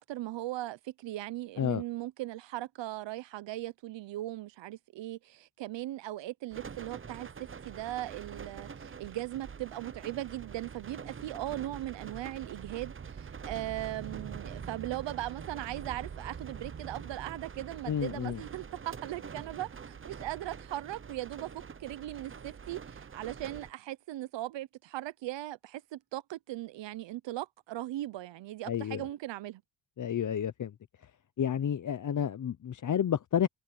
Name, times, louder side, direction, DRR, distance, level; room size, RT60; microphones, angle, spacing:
voice 1, 0.0-29.6, right 15 dB, 90° right, 0.8 m, -39 dB
sound 1, 6.5-23.7, right 6 dB, 30° right, 0.8 m, -45 dB
voice 2, 17.9-18.4 28.6-29.0 30.0-30.7 31.4-33.5, left 9 dB, 45° left, 0.8 m, -30 dB
cardioid pair, 100°, 42 cm